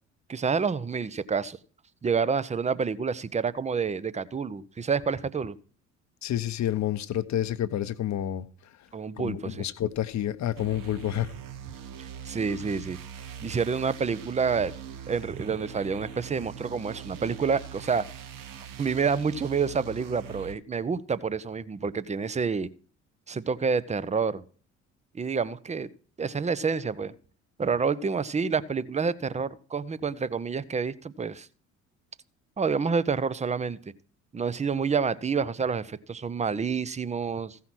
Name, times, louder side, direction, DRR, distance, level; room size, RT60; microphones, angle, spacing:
voice 1, 0.3-1.6 2.0-5.6 8.9-9.7 12.2-13.0 13.4-14.7 15.1-18.0 18.8-22.7 23.3-24.4 25.1-25.9 26.2-27.1 27.6-31.5 32.6-33.8 34.3-37.6, right 5 dB, 15° right, 0.7 m, -28 dB
voice 2, 6.2-8.5 9.2-11.3, left 11 dB, 45° left, 0.9 m, -29 dB
sound 1, 10.6-20.5, right 9 dB, 55° right, 1.2 m, -42 dB
15.0 x 5.7 x 6.2 m
hypercardioid pair, 55°, 39 cm